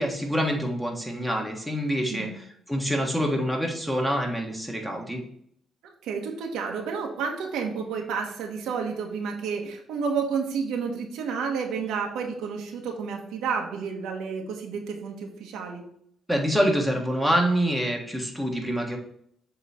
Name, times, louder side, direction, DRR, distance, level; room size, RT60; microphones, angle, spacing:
voice 1, 0.0-5.2 16.3-19.0, equal, ahead, 0 dB, 1.5 m, -26 dB
voice 2, 6.0-15.8, right 5 dB, 90° right, 2 dB, 1.1 m, -30 dB
7.7 x 3.1 x 4.2 m, 0.68 s
cardioid pair, 90°, 0 cm